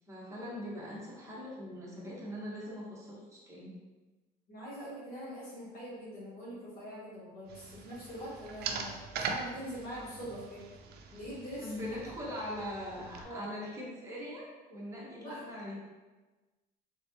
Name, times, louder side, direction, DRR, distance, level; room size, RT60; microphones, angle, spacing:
voice 1, 0.1-3.7 11.6-15.8, equal, 15° right, -6 dB, 1.3 m, -41 dB
voice 2, 4.5-10.6 11.1-11.7 13.2-13.5 15.0-15.4, equal, 60° left, -8 dB, 1.3 m, -43 dB
sound 1, 7.5-13.2, right 5 dB, 70° right, 0.5 m, -42 dB
3.5 x 3.2 x 2.9 m, 1.2 s
cardioid pair, 110°, 17 cm